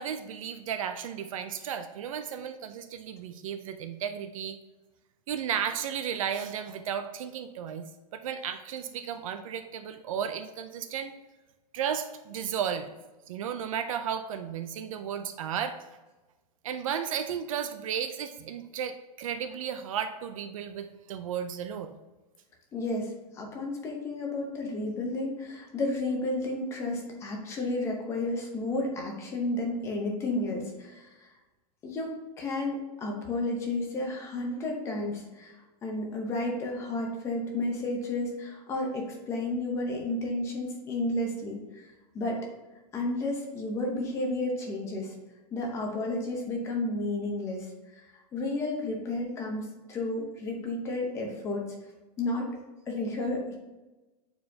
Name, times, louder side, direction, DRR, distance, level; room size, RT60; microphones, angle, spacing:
voice 1, 0.0-4.6 5.3-7.8 8.1-11.2 11.7-12.9 13.3-15.8 16.6-21.9, right 8 dB, 50° right, 9 dB, 0.5 m, -34 dB
voice 2, 22.7-31.3 31.8-35.5 35.8-41.8 42.1-42.4 42.9-45.1 45.5-48.0 48.3-51.6 52.2-52.4 52.9-53.6, left 2 dB, 15° left, 0 dB, 0.7 m, -32 dB
8.4 x 4.6 x 2.7 m, 1.1 s
supercardioid pair, 175°, 21 cm